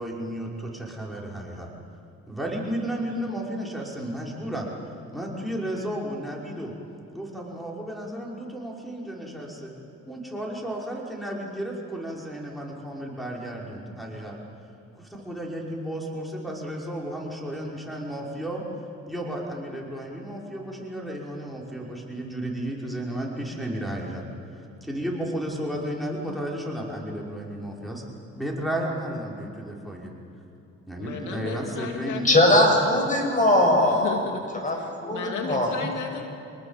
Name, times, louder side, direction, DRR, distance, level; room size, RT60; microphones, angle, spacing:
voice 1, 0.0-1.7 2.3-4.7 5.1-6.7 7.1-9.7 10.1-14.4 14.9-18.6 19.1-24.2 24.5-28.0 28.4-30.1 30.9-32.3, right 1 dB, ahead, -2 dB, 5.6 m, -33 dB
voice 2, 31.0-32.8 33.8-36.2, left 5 dB, 80° left, 3 dB, 2.4 m, -35 dB
voice 3, 32.2-34.1 34.6-35.7, left 1 dB, 25° left, 2 dB, 7.2 m, -20 dB
28.0 x 19.5 x 7.5 m, 2.8 s
cardioid pair, 90°, 30 cm